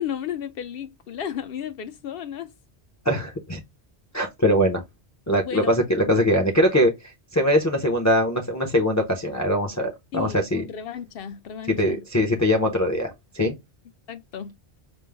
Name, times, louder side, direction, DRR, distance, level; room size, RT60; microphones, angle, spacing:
voice 1, 0.0-2.5 5.4-5.8 10.1-12.0 14.1-14.5, left 9 dB, 65° left, 0.8 m, -33 dB
voice 2, 3.1-3.6 4.1-4.8 5.3-10.7 11.8-13.5, equal, 20° left, 0.5 m, -22 dB
5.2 x 2.0 x 3.4 m
omnidirectional pair, 1.1 m